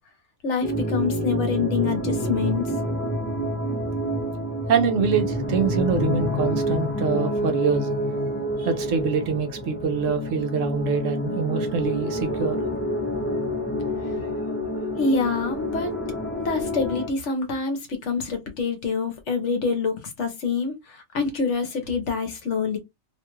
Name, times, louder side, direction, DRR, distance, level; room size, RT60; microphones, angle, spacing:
voice 1, 0.4-2.7 15.0-15.9 16.4-22.8, left 4 dB, 65° left, 1.0 m, -26 dB
sound 1, 0.6-17.1, equal, 15° left, 0.6 m, -28 dB
voice 2, 4.7-7.9 8.6-12.6, right 5 dB, 70° right, 1.0 m, -25 dB
2.8 x 2.3 x 3.0 m
omnidirectional pair, 1.4 m